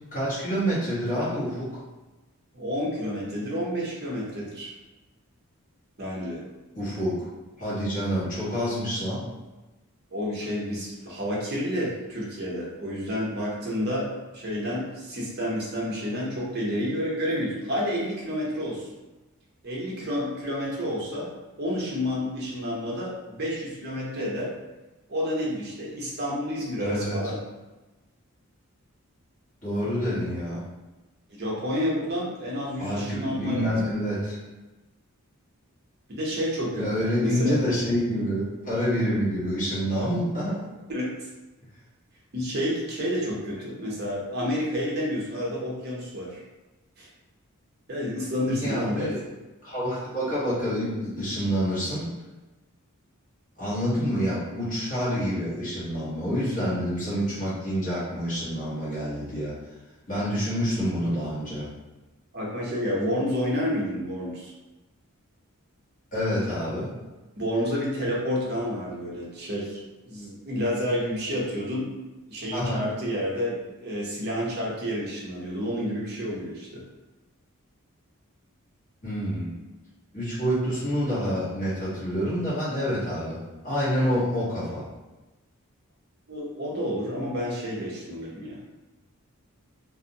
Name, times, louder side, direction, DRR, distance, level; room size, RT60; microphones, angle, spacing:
voice 1, 0.1-1.8 6.7-7.3 7.6-9.3 26.8-27.2 29.6-30.6 32.8-34.4 36.7-40.6 48.4-49.2 49.6-52.1 53.6-59.6 60.1-61.7 66.1-66.9 72.5-72.8 79.0-79.5 80.1-84.9, equal, 35° left, -10 dB, 1.1 m, -27 dB
voice 2, 2.5-4.7 6.0-6.4 10.1-18.9 19.6-21.3 21.6-24.5 25.1-27.4 31.4-33.8 36.1-37.6 40.9-41.3 42.3-46.4 47.0-47.1 47.9-49.1 62.3-64.5 67.4-69.8 70.1-71.9 72.3-76.8 86.3-88.6, equal, 45° right, -4 dB, 0.6 m, -30 dB
2.5 x 2.0 x 2.7 m, 1.1 s
head